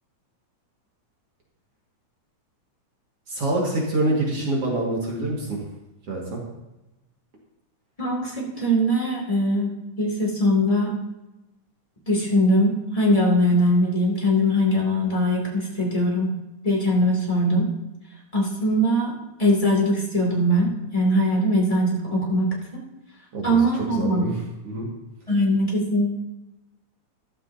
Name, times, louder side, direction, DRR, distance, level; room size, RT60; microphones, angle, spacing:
voice 1, 3.3-5.6 6.1-6.4 23.3-24.9, right 2 dB, 50° right, -3 dB, 2.7 m, -26 dB
voice 2, 8.0-9.7 10.0-10.9 12.1-16.3 16.6-17.7 18.3-19.1 19.4-22.8 23.4-24.2 25.3-26.1, equal, 10° left, -2 dB, 2.5 m, -21 dB
13.5 x 12.5 x 2.8 m, 0.99 s
omnidirectional pair, 3.5 m